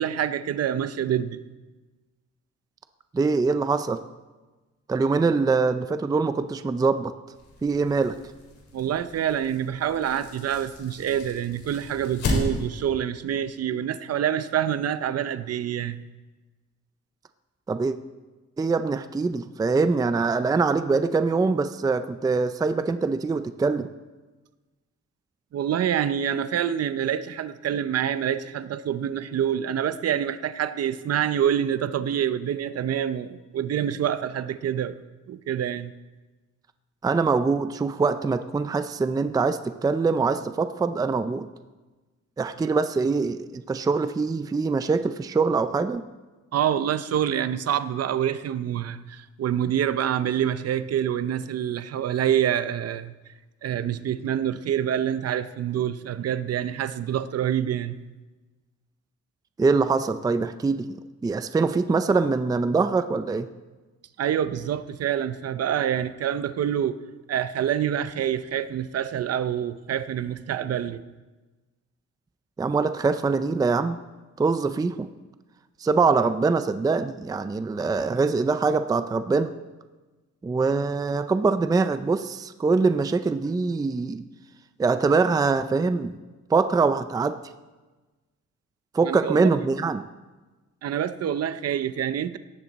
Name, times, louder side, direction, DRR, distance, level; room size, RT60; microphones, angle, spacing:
voice 1, 0.0-1.4 8.7-16.0 25.5-35.0 35.3-35.9 46.5-53.1 53.6-58.0 64.2-67.0 67.3-71.0 89.0-89.7 90.8-92.4, right 9 dB, 55° right, 13 dB, 0.7 m, -26 dB
voice 2, 3.1-4.0 4.9-7.1 7.6-8.1 17.7-18.0 18.6-23.9 37.0-41.5 42.4-46.0 59.6-61.0 61.2-63.5 72.6-74.0 74.4-75.1 75.8-79.5 80.4-84.2 84.8-86.2 86.5-87.4 88.9-90.0, right 4 dB, 15° right, 10 dB, 0.4 m, -23 dB
sound 1, 7.3-12.9, left 2 dB, 75° left, 4.3 m, -34 dB
17.0 x 13.5 x 4.1 m, 1.2 s
wide cardioid pair, 165°, 29 cm